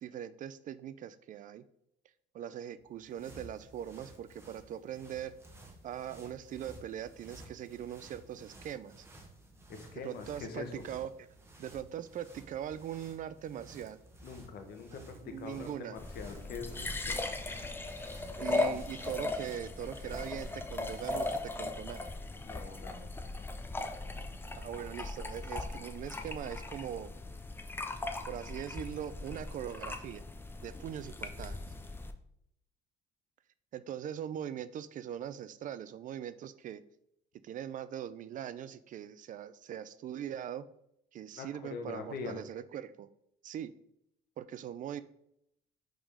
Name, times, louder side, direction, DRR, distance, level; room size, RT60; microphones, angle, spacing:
voice 1, 0.0-1.6 2.3-5.4 5.8-9.1 10.0-11.1 11.6-14.0 15.2-15.9 18.4-22.1 24.6-27.1 28.3-30.3 30.6-31.6 33.7-36.8 37.4-40.7 41.1-43.1 43.4-43.7 44.4-45.0, right 10 dB, 50° right, 14 dB, 0.4 m, -41 dB
sound 1, 2.8-21.6, right 1 dB, 15° right, 1.2 m, -54 dB
voice 2, 9.7-10.9 14.2-17.4 22.4-23.1 41.3-42.4, left 5 dB, 65° left, 6 dB, 1.0 m, -44 dB
sound 2, 16.0-32.1, left 2 dB, 15° left, 0.5 m, -38 dB
5.1 x 3.8 x 4.9 m, 0.75 s
cardioid pair, 110°, 17 cm